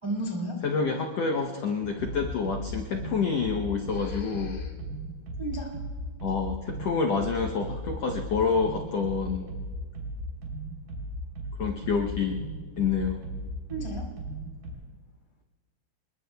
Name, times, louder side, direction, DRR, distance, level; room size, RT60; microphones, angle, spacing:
voice 1, 0.0-0.6 3.9-4.7 5.4-5.7 13.7-14.1, right 1 dB, 15° right, -2 dB, 1.0 m, -34 dB
voice 2, 0.6-4.6 6.2-9.5 11.6-12.4 12.8-13.2, left 5 dB, 85° left, 2 dB, 1.4 m, -28 dB
sound 1, 1.8-14.7, equal, 65° right, 5.0 m, -37 dB
28.5 x 21.0 x 2.3 m, 1.5 s
omnidirectional pair, 4.2 m